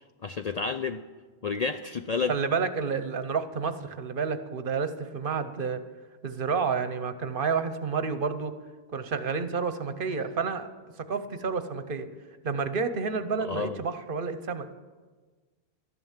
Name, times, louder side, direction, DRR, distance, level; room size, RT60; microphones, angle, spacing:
voice 1, 0.2-1.0 1.4-2.3 13.4-13.8, left 5 dB, 50° left, 8 dB, 0.5 m, -30 dB
voice 2, 2.3-5.8 6.2-8.5 8.9-10.7 11.1-12.1 12.4-14.7, right 5 dB, 55° right, 11 dB, 0.9 m, -30 dB
13.0 x 11.0 x 7.2 m, 1.4 s
omnidirectional pair, 1.1 m